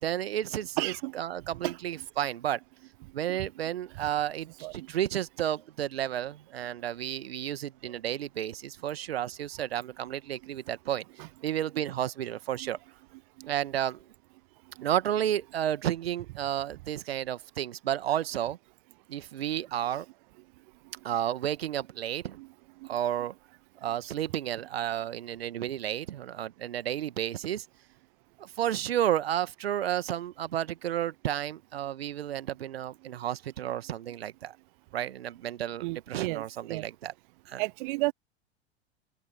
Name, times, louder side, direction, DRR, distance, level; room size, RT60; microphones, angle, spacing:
voice 1, 0.0-2.6 3.1-12.8 13.5-14.1 14.8-18.6 19.1-20.1 21.0-22.4 22.8-23.3 23.8-27.7 28.4-34.6 34.9-37.1 37.5-37.7, right 11 dB, 65° right, 1.7 m, -32 dB
voice 2, 0.8-1.1 1.6-1.8 3.3-3.5 4.0-4.1 4.6-4.7 11.2-11.3 12.6-12.7 19.9-20.0 22.4-22.5 35.8-36.8 37.6-38.1, right 23 dB, 50° right, 0.9 m, -33 dB
open air
figure-of-eight pair, 90°, 33 cm